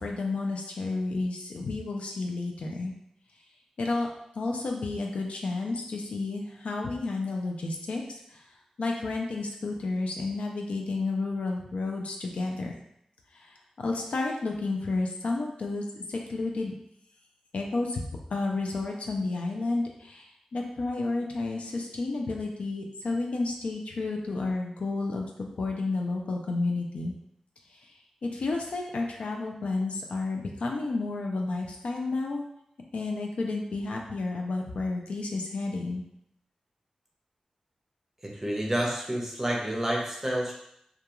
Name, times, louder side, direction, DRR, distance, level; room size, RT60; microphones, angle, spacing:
voice 1, 0.0-2.9 3.8-4.1 4.4-8.0 8.3-8.4 8.8-12.7 13.3-16.7 17.5-18.0 18.3-27.1 28.2-32.4 32.9-36.0, left 3 dB, 75° left, 0 dB, 0.4 m, -31 dB
voice 2, 38.2-40.5, right 1 dB, 15° right, -3 dB, 0.7 m, -29 dB
2.3 x 2.3 x 2.9 m, 0.75 s
wide cardioid pair, 80°, 2 cm